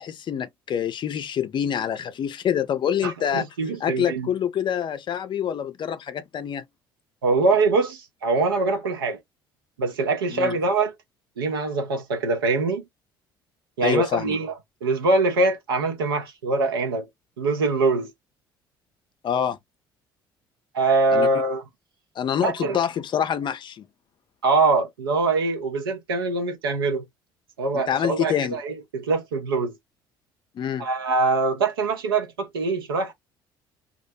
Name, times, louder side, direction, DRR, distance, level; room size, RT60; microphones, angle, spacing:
voice 1, 0.0-3.4 3.8-6.6 10.3-10.6 13.8-14.4 19.2-19.6 21.1-21.3 22.2-23.9 27.7-28.6 30.6-30.9, left 8 dB, 40° left, 0.5 m, -26 dB
voice 2, 3.0-4.3 7.2-9.2 9.8-10.9 11.4-12.8 13.8-14.5 14.8-17.1 17.4-18.1 20.7-21.6 22.4-22.8 24.4-27.0 27.6-29.7 30.8-33.1, right 3 dB, 85° right, 0.6 m, -23 dB
2.4 x 2.0 x 2.6 m
hypercardioid pair, 55°, 12 cm